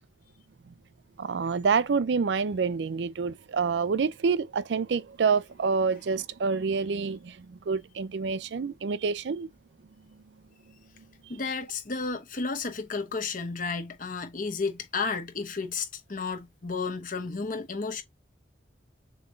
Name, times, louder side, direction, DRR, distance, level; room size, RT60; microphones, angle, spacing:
voice 1, 1.2-9.5, right 5 dB, 75° right, 0.4 m, -27 dB
voice 2, 11.3-18.0, left 4 dB, 50° left, 1.0 m, -32 dB
6.9 x 2.9 x 2.4 m
head